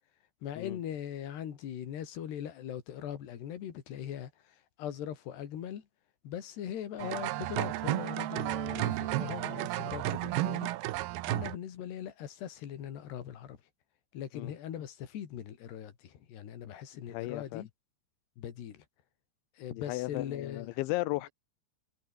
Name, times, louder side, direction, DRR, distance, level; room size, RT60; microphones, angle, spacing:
voice 1, 0.4-4.3 4.8-5.9 6.2-10.7 11.3-13.6 14.1-17.7 18.4-18.8 19.6-20.8, left 10 dB, 60° left, 4.5 m, -40 dB
sound 1, 7.0-11.6, right 17 dB, 80° right, 2.3 m, -33 dB
voice 2, 17.1-17.6 19.8-21.3, left 21 dB, 80° left, 3.0 m, -35 dB
omnidirectional pair, 5.5 m